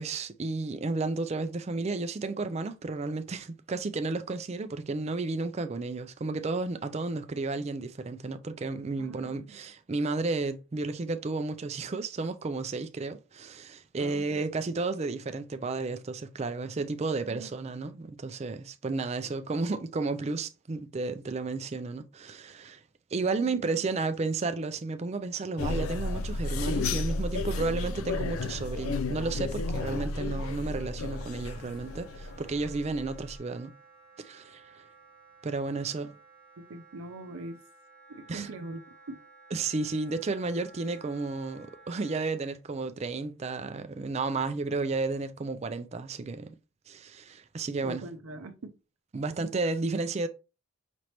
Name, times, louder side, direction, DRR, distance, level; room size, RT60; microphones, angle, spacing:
voice 1, 0.0-22.8 23.1-33.7 34.2-34.8 35.4-36.1 38.3-38.5 39.5-46.6 46.9-48.1 49.1-50.3, right 3 dB, 30° right, 0.3 m, -32 dB
voice 2, 9.0-9.6 14.0-14.3 17.3-17.5 23.1-23.7 36.6-37.6 38.1-38.8 39.1-39.2 47.8-48.7, right 2 dB, 80° right, 0.5 m, -42 dB
sound 1, 25.6-33.4, left 2 dB, 80° left, 0.4 m, -33 dB
Wind instrument woodwind instrument, 31.0-42.3, right 3 dB, 5° left, 0.8 m, -55 dB
5.1 x 3.2 x 2.9 m
head